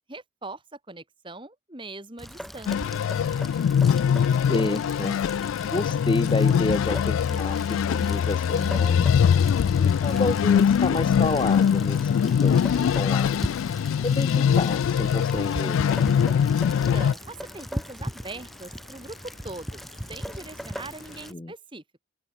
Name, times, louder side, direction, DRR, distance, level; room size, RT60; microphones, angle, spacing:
voice 1, 0.0-3.1 16.6-19.8 20.1-22.0, right 2 dB, 25° right, 2.5 m, -41 dB
Rain, 2.2-21.3, equal, ahead, 0.8 m, -39 dB
sound 1, 2.7-17.1, left 7 dB, 85° left, 0.3 m, -22 dB
sound 2, 3.0-21.3, left 2 dB, 40° left, 3.6 m, -53 dB
voice 2, 4.5-5.1 5.6-9.2 9.8-13.6 14.0-15.8 21.3-21.5, left 2 dB, 25° left, 0.6 m, -30 dB
open air
head